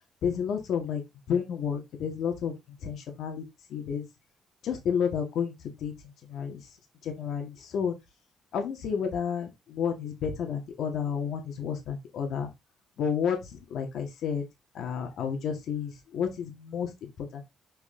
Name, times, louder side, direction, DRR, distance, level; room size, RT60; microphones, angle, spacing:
voice 1, 0.2-1.0 1.3-2.5 2.8-3.4 3.7-4.1 4.6-5.9 6.3-6.6 7.0-7.9 8.5-12.5 13.0-13.4 13.7-14.4 14.7-17.4, left 7 dB, 75° left, 2.1 m, -31 dB
6.5 x 4.8 x 3.4 m
cardioid pair, 90°, 0 cm